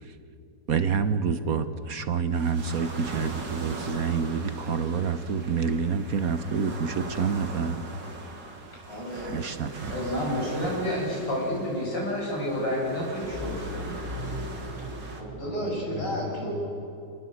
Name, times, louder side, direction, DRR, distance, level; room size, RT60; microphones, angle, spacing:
voice 1, 0.7-7.8 9.2-9.9, right 6 dB, 55° right, 10 dB, 1.3 m, -27 dB
sound 1, 2.3-15.2, right 2 dB, 75° right, 3.2 m, -40 dB
voice 2, 8.9-9.4 9.9-10.4 11.6-11.7 15.2-16.6, equal, 70° left, -3 dB, 7.8 m, -34 dB
voice 3, 9.9-14.0 14.9-15.0 15.4-16.5, left 1 dB, 85° left, -3 dB, 8.3 m, -30 dB
sound 2, 10.9-11.2 13.3-15.4, left 1 dB, 5° right, 4.3 m, -38 dB
28.5 x 19.5 x 8.1 m, 2.7 s
omnidirectional pair, 1.9 m